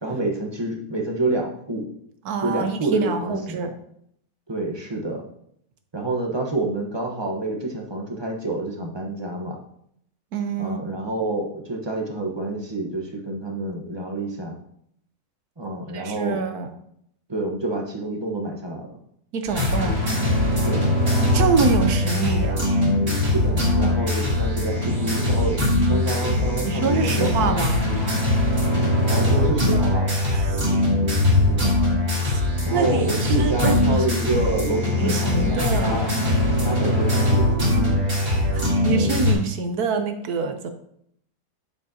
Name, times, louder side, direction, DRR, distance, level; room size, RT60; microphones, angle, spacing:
voice 1, 0.0-1.9 2.4-3.6 4.5-5.2 5.9-9.6 10.6-14.5 15.6-16.4 17.3-18.9 20.6-20.8 23.2-27.5 29.0-30.1 32.6-36.1 36.6-38.4, right 2 dB, 20° right, 1 dB, 1.0 m, -28 dB
voice 2, 2.2-3.7 10.3-10.8 15.9-16.7 19.3-20.0 21.3-22.6 26.6-27.9 30.3-30.7 32.2-32.4 32.7-34.1 34.3-34.5 34.8-36.0 38.5-40.7, right 5 dB, 75° right, 7 dB, 1.4 m, -26 dB
sound 1, 19.5-39.3, left 1 dB, 50° right, 2.9 m, -21 dB
8.2 x 7.1 x 2.8 m, 0.70 s
omnidirectional pair, 1.7 m